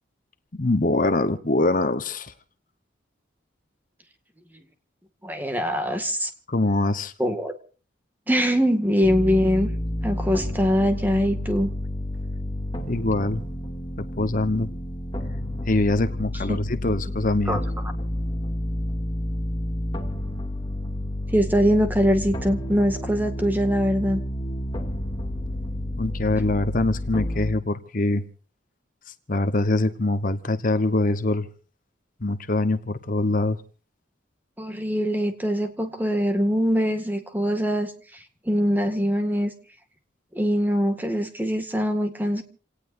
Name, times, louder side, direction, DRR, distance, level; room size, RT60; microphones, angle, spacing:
voice 1, 0.5-2.3 6.5-7.1 12.9-13.4 14.0-14.7 15.7-17.6 26.0-28.2 29.1-31.5 32.2-33.6, left 2 dB, 45° left, 1.0 m, -23 dB
voice 2, 5.2-6.3 7.2-7.6 8.3-9.7 10.0-11.7 16.5-16.6 17.5-17.6 21.3-24.2 34.6-37.9 38.5-39.5 40.3-42.4, equal, 10° right, 2.0 m, -23 dB
sound 1, 9.0-27.5, left 1 dB, 25° left, 2.5 m, -30 dB
28.5 x 18.5 x 2.7 m
head